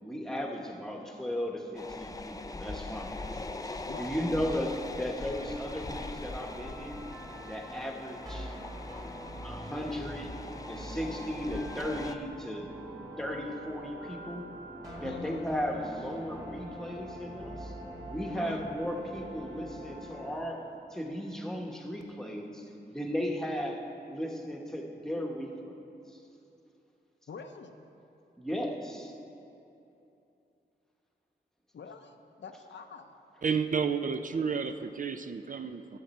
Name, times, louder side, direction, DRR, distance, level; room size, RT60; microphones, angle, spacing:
voice 1, 0.0-7.0 7.5-8.6 9.4-10.3 10.7-12.7 13.2-14.5 15.0-17.8 18.1-20.6 20.9-23.8 24.1-25.8 28.4-29.1, equal, 5° left, 1 dB, 1.1 m, -36 dB
sound 1, 1.8-12.2, left 2 dB, 20° left, 0.4 m, -41 dB
sound 2, 5.2-20.4, equal, 20° right, 2.1 m, -44 dB
voice 2, 15.0-15.5 18.3-18.7 27.3-27.8 31.7-33.2, left 5 dB, 90° left, 6 dB, 0.6 m, -45 dB
voice 3, 33.4-36.0, right 6 dB, 50° right, 9 dB, 0.4 m, -31 dB
12.5 x 7.2 x 4.2 m, 2.8 s
wide cardioid pair, 85°, 18 cm